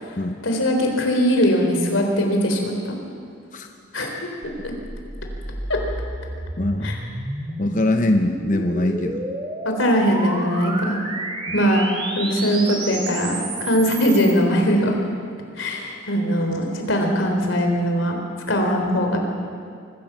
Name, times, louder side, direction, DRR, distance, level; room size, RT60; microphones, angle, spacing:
voice 1, 0.4-3.0 3.9-4.1 4.6-4.7 5.7-5.8 6.8-7.0 9.6-11.0 11.5-11.9 12.2-15.0 15.6-18.2 18.5-19.2, equal, 90° left, 2 dB, 3.9 m, -21 dB
sound 1, 4.4-14.3, right 2 dB, 25° right, 2.5 m, -31 dB
voice 2, 6.6-6.9 7.6-9.3 11.5-11.6, left 1 dB, 40° left, 5 dB, 0.8 m, -22 dB
24.0 x 15.5 x 7.4 m, 2.3 s
head